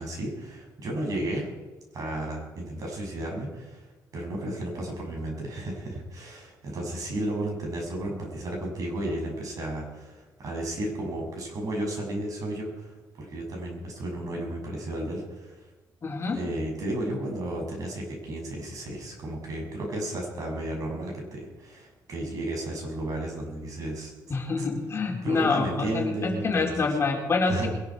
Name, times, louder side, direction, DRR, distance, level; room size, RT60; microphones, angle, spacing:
voice 1, 0.0-1.5 1.9-3.8 4.1-15.7 16.3-24.1 25.2-26.7 27.5-27.7, right 1 dB, 55° right, 0 dB, 6.8 m, -33 dB
voice 2, 16.0-16.4 24.3-27.7, left 4 dB, 40° left, 1 dB, 3.6 m, -26 dB
22.0 x 12.0 x 4.8 m, 1.2 s
cardioid pair, 100°, 7 cm